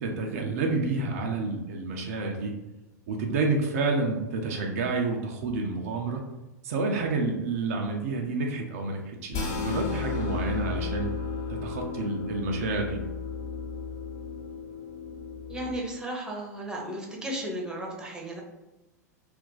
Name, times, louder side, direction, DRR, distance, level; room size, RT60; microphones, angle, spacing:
voice 1, 0.0-2.5 3.1-6.3 6.6-11.1 11.5-13.0, right 3 dB, 55° right, 1 dB, 0.5 m, -29 dB
sound 1, 9.3-15.8, left 5 dB, 35° left, 0.9 m, -34 dB
voice 2, 15.5-18.4, right 1 dB, 10° right, -2 dB, 0.7 m, -34 dB
2.5 x 2.2 x 3.7 m, 1.0 s
figure-of-eight pair, 95°, 9 cm